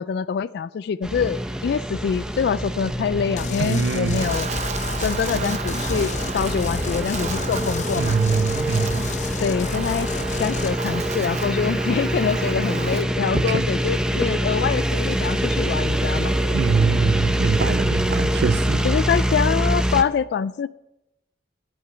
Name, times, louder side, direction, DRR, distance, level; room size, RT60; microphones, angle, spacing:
voice 1, 0.0-4.5 5.0-8.2 9.4-10.1 10.4-16.3 18.8-20.7, left 7 dB, 65° left, 0.3 m, -25 dB
sound 1, 1.0-20.0, equal, 5° right, 0.7 m, -25 dB
sound 2, 3.4-10.8, left 3 dB, 45° left, 0.8 m, -32 dB
voice 2, 3.6-4.3 8.0-9.1 13.3-13.6 16.5-18.8, right 5 dB, 70° right, 0.4 m, -23 dB
Wind, 4.1-13.0, right 5 dB, 40° right, 0.8 m, -34 dB
11.5 x 8.7 x 6.0 m
head